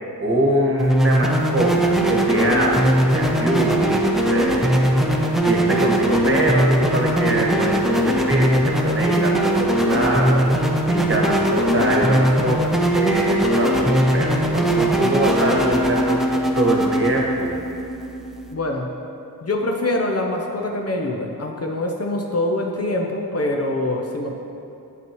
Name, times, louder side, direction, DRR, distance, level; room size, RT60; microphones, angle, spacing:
voice 1, 0.2-4.9 5.4-10.5 10.9-17.6, right 1 dB, 35° right, -2 dB, 1.2 m, -23 dB
sound 1, 0.8-18.5, right 1 dB, ahead, 0.6 m, -20 dB
voice 2, 18.5-18.9 19.4-24.3, left 1 dB, 40° left, 1 dB, 0.6 m, -24 dB
7.6 x 5.7 x 3.0 m, 2.7 s
wide cardioid pair, 70°, 36 cm